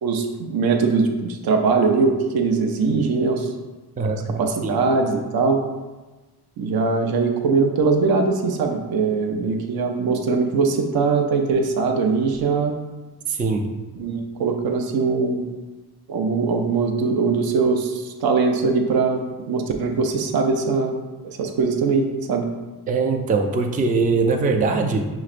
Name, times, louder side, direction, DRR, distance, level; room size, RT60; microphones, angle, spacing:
voice 1, 0.0-3.5 4.4-5.6 6.6-12.8 14.0-15.4 16.1-21.0 21.4-22.5, right 4 dB, 65° right, 4 dB, 0.6 m, -21 dB
voice 2, 4.0-4.8 13.3-13.7 22.9-25.1, right 4 dB, 25° right, 4 dB, 0.3 m, -22 dB
6.0 x 3.1 x 2.5 m, 1.2 s
cardioid pair, 125°, 39 cm